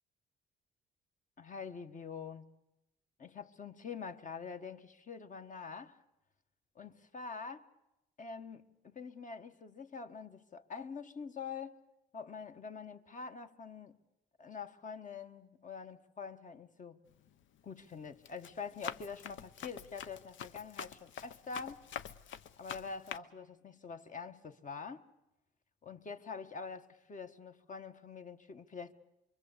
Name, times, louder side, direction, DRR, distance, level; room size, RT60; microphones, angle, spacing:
voice 1, 1.4-2.5 3.2-6.0 6.7-7.6 8.2-11.8 12.1-14.0 14.4-17.0 17.6-21.8 22.6-25.0 25.8-28.9, left 5 dB, 40° left, 1.4 m, -45 dB
Run, 17.1-17.4 17.9-23.2, left 9 dB, 75° left, 0.9 m, -46 dB
25.5 x 23.0 x 8.2 m
cardioid pair, 90°, 20 cm